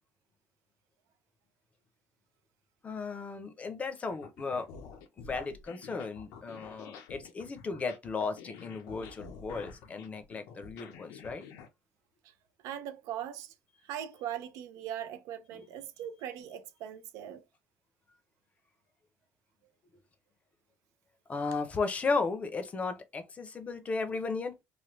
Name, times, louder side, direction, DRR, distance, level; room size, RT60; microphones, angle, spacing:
voice 1, 2.8-4.7 5.2-11.4 15.5-15.6 21.3-24.5, left 4 dB, 25° left, 0.6 m, -35 dB
sound 1, 4.1-11.7, left 6 dB, 90° left, 0.7 m, -49 dB
voice 2, 12.6-13.5 13.8-17.4, right 10 dB, 75° right, 0.5 m, -40 dB
3.3 x 2.2 x 3.0 m
cardioid pair, 145°, 5 cm